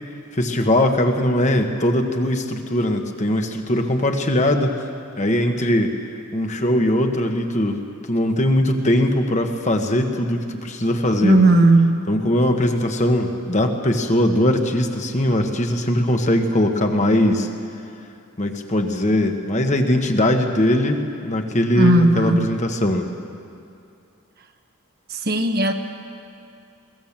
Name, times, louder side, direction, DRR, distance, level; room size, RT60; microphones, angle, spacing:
voice 1, 0.3-4.8 5.2-6.0 6.3-7.8 8.1-11.5 12.1-17.5 18.4-23.1, left 1 dB, 30° left, 4 dB, 1.3 m, -20 dB
voice 2, 11.2-12.0 21.7-22.5 25.1-25.7, right 2 dB, 45° right, 5 dB, 1.2 m, -16 dB
21.5 x 18.0 x 7.4 m, 2.5 s
head